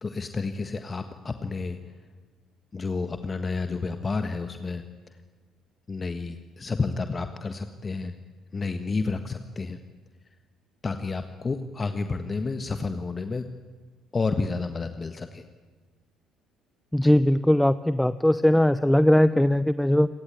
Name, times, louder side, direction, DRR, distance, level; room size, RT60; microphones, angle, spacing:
voice 1, 0.0-1.8 2.7-4.8 5.9-8.1 8.5-9.8 10.8-13.4 14.1-15.4 17.0-17.1, left 4 dB, 30° left, 8 dB, 1.5 m, -30 dB
voice 2, 16.9-20.1, left 1 dB, 5° left, 15 dB, 0.7 m, -20 dB
29.0 x 18.5 x 9.6 m, 1.3 s
figure-of-eight pair, 50°, 0 cm